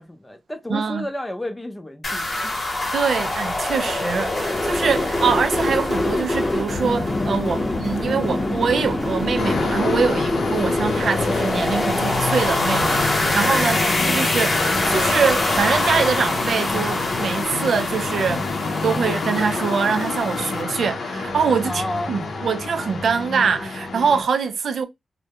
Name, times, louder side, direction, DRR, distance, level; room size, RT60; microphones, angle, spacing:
voice 1, 0.0-2.6 13.6-14.0 21.6-22.2, left 1 dB, 15° left, 0.5 m, -31 dB
voice 2, 0.7-1.1 2.9-18.5 18.8-24.8, right 6 dB, 75° right, 0.3 m, -24 dB
sound 1, 2.0-20.6, left 2 dB, 40° left, 0.9 m, -24 dB
sound 2, 9.4-24.2, left 3 dB, 75° left, 0.5 m, -27 dB
2.2 x 2.1 x 2.8 m
cardioid pair, 80°, 0 cm